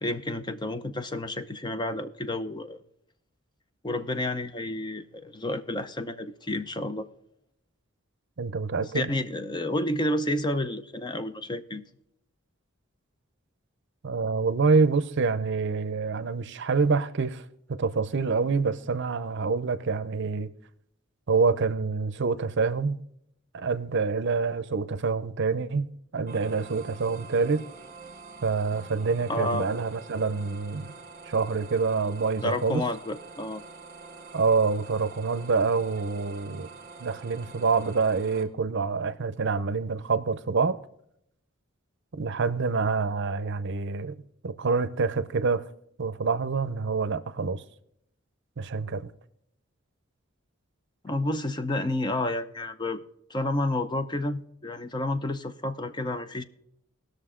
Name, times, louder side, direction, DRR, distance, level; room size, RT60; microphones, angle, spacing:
voice 1, 0.0-2.8 3.8-7.1 8.8-11.8 29.3-29.7 32.4-33.6 51.0-53.0 53.3-56.4, left 1 dB, 20° left, 0.6 m, -30 dB
voice 2, 8.4-9.1 14.0-17.4 17.8-20.5 21.3-23.0 23.5-25.9 26.1-27.7 28.4-30.9 31.3-32.9 34.3-36.7 37.0-40.8 42.1-44.2 44.4-45.6 46.0-47.6 48.6-49.1, right 4 dB, 60° right, 0.6 m, -26 dB
sound 1, 26.3-38.4, right 4 dB, 40° right, 1.6 m, -46 dB
19.0 x 6.4 x 3.7 m
head